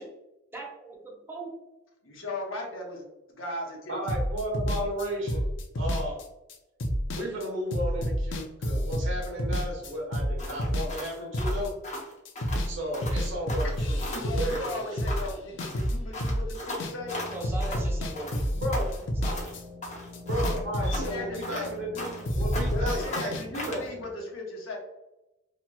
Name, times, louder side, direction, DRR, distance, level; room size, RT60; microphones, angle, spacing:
voice 1, 0.5-1.6 8.7-9.1 9.9-10.0 17.2-18.9 19.2-19.5, right 2 dB, 10° right, -2 dB, 0.6 m, -40 dB
voice 2, 2.0-3.0 3.3-4.0 14.1-17.2 20.8-21.7 22.7-24.8, left 2 dB, 85° left, 0 dB, 0.9 m, -37 dB
voice 3, 3.9-5.4 5.8-6.2 7.1-11.7 12.6-14.1 14.3-15.2 15.5-15.7 18.5-18.9 20.2-23.8, equal, 70° right, -2 dB, 1.1 m, -34 dB
sound 1, 4.1-12.0 12.3-12.7 13.0-17.2 17.4-19.9 20.1-22.0 22.3-23.4, equal, 65° left, 0.5 m, -29 dB
sound 2, 10.4-12.7 12.9-13.2 13.5-15.4 15.6-17.9 18.2-19.5 19.8-22.3 22.5-23.9, left 1 dB, 40° left, 0.8 m, -38 dB
sound 3, 16.9-24.1, left 2 dB, 40° right, 0.9 m, -45 dB
2.9 x 2.8 x 2.2 m, 0.96 s
head